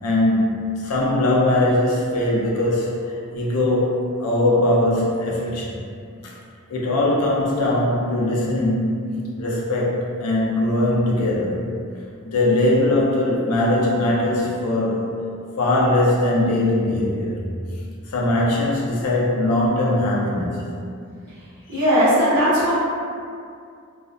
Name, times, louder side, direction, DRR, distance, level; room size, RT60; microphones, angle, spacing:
voice 1, 0.0-5.8 6.2-6.3 6.7-11.7 12.3-15.0 15.6-17.4 18.1-20.9 21.7-21.8, left 1 dB, 85° left, -4 dB, 0.5 m, -21 dB
voice 2, 21.7-22.7, equal, 65° right, -13 dB, 0.9 m, -17 dB
2.3 x 2.1 x 2.5 m, 2.3 s
head